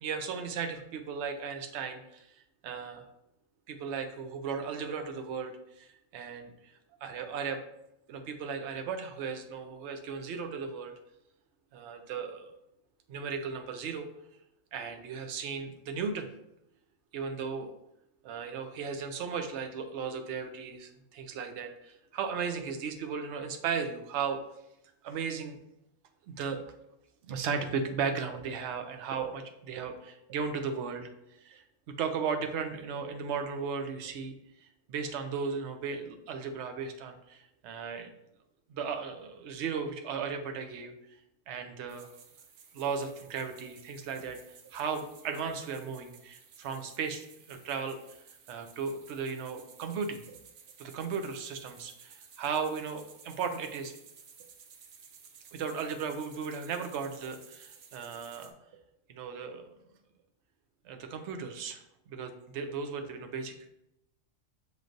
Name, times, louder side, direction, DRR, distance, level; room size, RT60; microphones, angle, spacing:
voice 1, 0.0-2.3 2.6-3.0 3.7-6.7 7.0-7.6 8.1-10.9 11.7-12.5 13.1-14.1 14.7-16.3 17.1-17.7 18.2-24.4 25.0-25.6 26.3-26.7 27.3-31.6 32.0-34.3 34.6-38.1 38.7-40.9 41.5-42.1 42.7-48.2 48.5-50.4 50.8-53.9 55.5-58.5 59.1-59.7 60.8-63.7, right 6 dB, 65° right, 6 dB, 0.8 m, -36 dB
sound 1, 41.9-58.5, right 6 dB, 85° right, 1.0 m, -55 dB
6.5 x 3.2 x 2.5 m, 0.83 s
omnidirectional pair, 1.3 m